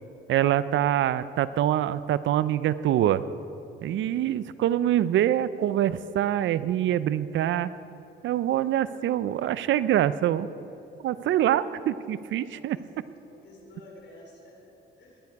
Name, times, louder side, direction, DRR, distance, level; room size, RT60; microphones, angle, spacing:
voice 1, 0.3-3.2 3.8-7.7 8.2-10.5 11.0-12.8, right 11 dB, 70° right, 15 dB, 0.5 m, -25 dB
voice 2, 3.9-4.2 11.1-11.5 12.5-12.9 13.2-15.2, left 2 dB, 60° left, -1 dB, 4.2 m, -52 dB
20.5 x 11.0 x 4.7 m, 3.0 s
cardioid pair, 90°, 20 cm